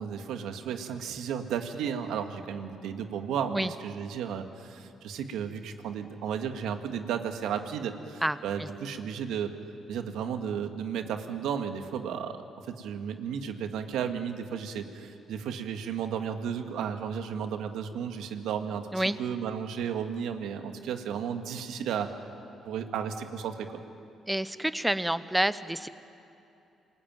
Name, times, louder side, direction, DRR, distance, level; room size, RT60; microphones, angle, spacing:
voice 1, 0.0-9.5 9.9-22.2 22.7-23.8, right 7 dB, 85° right, 6 dB, 1.9 m, -34 dB
voice 2, 8.2-8.7 18.9-19.2 24.3-25.9, right 1 dB, 5° right, 13 dB, 0.9 m, -28 dB
27.0 x 21.0 x 9.2 m, 2.8 s
cardioid pair, 90°, 0 cm